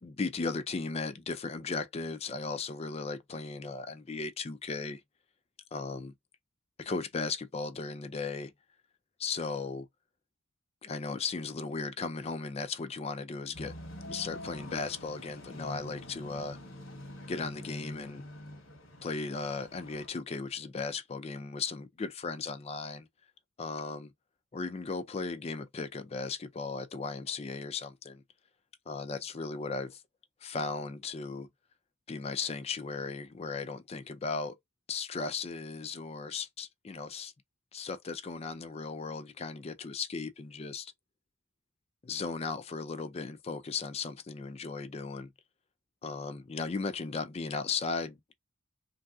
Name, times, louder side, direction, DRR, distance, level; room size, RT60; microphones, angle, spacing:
voice 1, 0.0-5.0 5.7-6.1 6.8-8.5 9.2-9.9 10.8-13.7 14.0-16.6 17.3-18.2 19.0-23.1 23.6-24.1 24.5-28.2 28.9-30.0 30.4-31.5 32.1-34.6 34.9-37.3 37.7-40.9 42.0-45.3 46.0-48.3, left 4 dB, 30° left, 0.4 m, -36 dB
sound 1, 13.5-20.1, left 1 dB, 65° left, 1.2 m, -45 dB
3.2 x 2.7 x 2.3 m
head